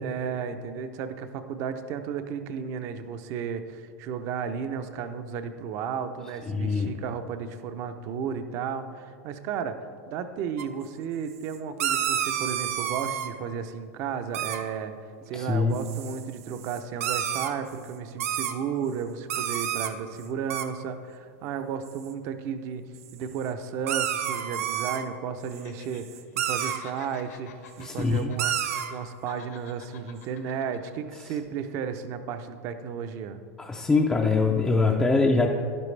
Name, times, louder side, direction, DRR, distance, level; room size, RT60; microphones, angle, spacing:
voice 1, 0.0-9.8 10.1-22.8 23.1-26.1 26.3-27.5 27.8-33.4, right 7 dB, 40° right, 9 dB, 0.6 m, -33 dB
voice 2, 6.5-6.9 15.3-15.8 27.8-28.3 33.6-35.6, left 3 dB, 10° left, -1 dB, 0.4 m, -23 dB
sound 1, 10.6-10.7 11.5-13.3 14.3-14.6 15.7-17.5 18.1-18.5 19.3-19.9 20.2-20.3 20.5-20.7 21.8-22.1 23.0-23.1 23.9-25.0 25.5-25.6 26.0-26.8 27.9-28.0 28.4-28.9, right 10 dB, 75° right, 0.8 m, -29 dB
Laughter, 25.5-26.0 26.3-29.0 29.3-30.9 31.3-31.4, left 8 dB, 85° left, 1.5 m, -49 dB
12.0 x 10.0 x 3.3 m, 2.2 s
supercardioid pair, 160°, 8 cm